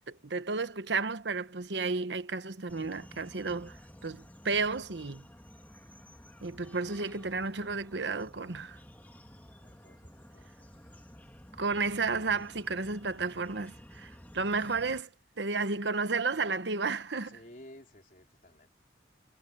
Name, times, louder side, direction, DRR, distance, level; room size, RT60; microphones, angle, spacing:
voice 1, 0.1-5.2 6.4-8.8 11.6-15.1 15.4-17.4, right 4 dB, 80° right, 1.1 m, -32 dB
sound 1, 2.7-15.0, equal, 10° left, 2.3 m, -52 dB
voice 2, 9.6-10.9 17.1-18.7, left 1 dB, 50° left, 3.6 m, -55 dB
head